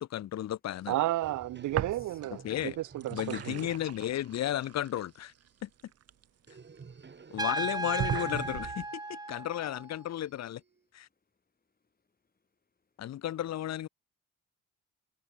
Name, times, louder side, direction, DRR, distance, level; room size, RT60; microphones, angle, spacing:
voice 1, 0.0-1.0 2.4-2.8 3.1-5.3 7.3-10.6 10.9-11.1 13.0-13.9, left 12 dB, 60° left, 1.0 m, -34 dB
voice 2, 0.9-3.6, right 15 dB, 75° right, 1.0 m, -32 dB
sound 1, 1.2-4.3 4.6-4.7 6.5-9.2 9.7-10.6, right 5 dB, 35° right, 7.7 m, -48 dB
voice 3, 1.7-2.2 6.8-7.4 11.6-13.2, left 4 dB, 30° left, 6.2 m, -66 dB
sound 2, 1.7-2.5 2.8-6.8 7.4-7.5 8.0-8.9, right 10 dB, 55° right, 1.0 m, -39 dB
Trumpet, 7.4-10.0, right 2 dB, 15° right, 1.8 m, -35 dB
cardioid pair, 90°, 30 cm